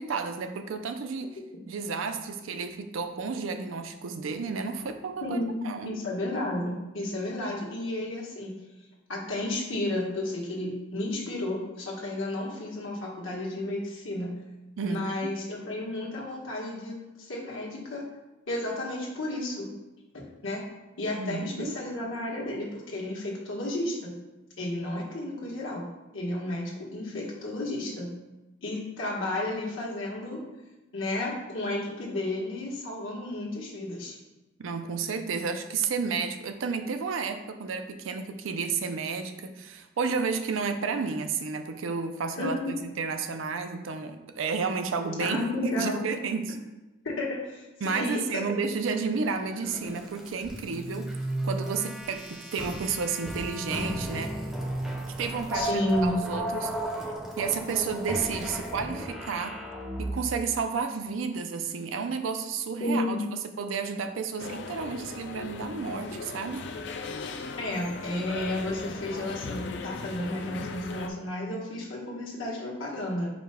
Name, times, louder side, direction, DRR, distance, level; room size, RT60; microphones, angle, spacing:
voice 1, 0.0-1.4 1.7-5.4 5.6-5.9 14.8-15.3 21.2-21.8 34.6-46.6 47.8-51.1 51.4-54.4 55.2-56.8 57.4-59.6 60.0-63.2 63.6-66.7, right 5 dB, 85° right, 7 dB, 0.4 m, -31 dB
voice 2, 5.2-8.5 9.1-14.3 14.8-18.0 18.5-19.7 20.1-20.6 21.0-24.1 24.6-25.9 26.1-28.1 28.6-30.4 30.9-34.2 42.4-42.7 45.2-46.0 47.0-48.4 55.5-56.1 62.8-63.2 67.6-73.3, left 1 dB, 80° left, -4 dB, 1.2 m, -32 dB
sound 1, 49.2-60.5, right 1 dB, ahead, 0.5 m, -35 dB
sound 2, 64.4-71.1, left 4 dB, 60° left, 0.4 m, -38 dB
4.9 x 2.2 x 4.8 m, 1.0 s
head